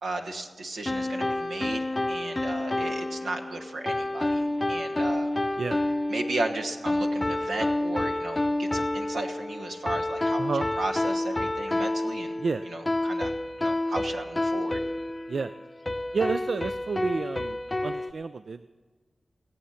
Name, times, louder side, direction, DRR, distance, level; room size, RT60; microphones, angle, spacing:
voice 1, 0.0-5.3 6.1-10.4 10.8-13.3 13.6-14.8, right 2 dB, 90° right, 1 dB, 1.3 m, -35 dB
sound 1, 0.9-18.1, left 1 dB, 30° left, 0.6 m, -29 dB
voice 2, 16.1-18.7, right 4 dB, 70° right, 12 dB, 0.3 m, -30 dB
18.5 x 8.0 x 5.7 m, 1.4 s
cardioid pair, 40°, 0 cm